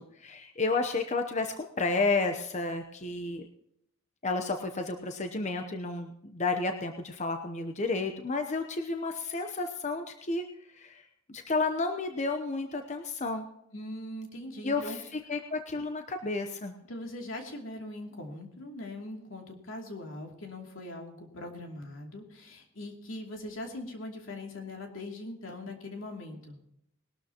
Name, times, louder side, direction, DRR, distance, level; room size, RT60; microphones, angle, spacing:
voice 1, 0.0-3.5 4.2-10.4 10.8-11.0 11.3-13.5 14.6-16.7, left 3 dB, 35° left, 6 dB, 0.9 m, -31 dB
voice 2, 13.7-15.0 16.9-26.6, left 1 dB, 80° left, 1 dB, 2.7 m, -41 dB
20.5 x 12.5 x 2.9 m, 0.76 s
head